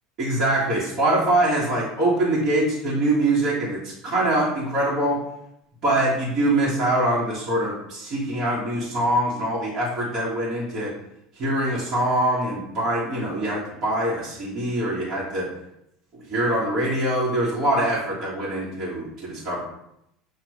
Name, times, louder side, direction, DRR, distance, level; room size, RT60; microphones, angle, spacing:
voice 1, 0.2-5.2 5.8-10.9 11.3-15.5 16.3-19.6, right 1 dB, 50° right, -7 dB, 1.6 m, -23 dB
6.1 x 2.8 x 3.1 m, 0.81 s
supercardioid pair, 105°, 0 cm